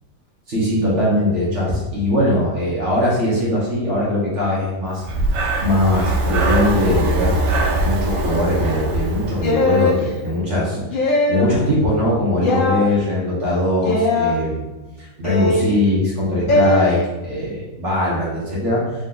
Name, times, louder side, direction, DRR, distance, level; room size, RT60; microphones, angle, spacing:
voice 1, 0.5-5.0 5.6-7.4 7.8-10.8 11.3-14.7 15.0-18.8, left 1 dB, 45° right, -6 dB, 1.4 m, -20 dB
Breathing, 5.0-9.9, right 2 dB, 80° right, 1.3 m, -22 dB
sound 1, 9.4-10.0 10.9-11.5 12.4-12.9 13.8-14.3 15.2-15.7 16.5-16.8, left 2 dB, 50° left, 0.6 m, -19 dB
3.9 x 3.1 x 3.8 m, 1.1 s
omnidirectional pair, 1.9 m